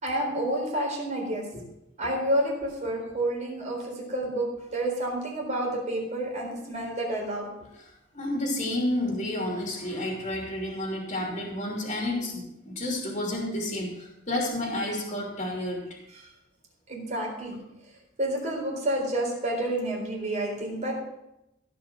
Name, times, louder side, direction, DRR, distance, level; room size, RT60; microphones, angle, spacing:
voice 1, 0.0-1.5 2.0-7.4 16.1-16.3 16.9-17.6 18.2-21.1, right 1 dB, 35° right, -1 dB, 4.0 m, -29 dB
voice 2, 8.1-15.8, left 1 dB, 35° left, -1 dB, 3.0 m, -30 dB
16.0 x 5.7 x 6.3 m, 0.88 s
head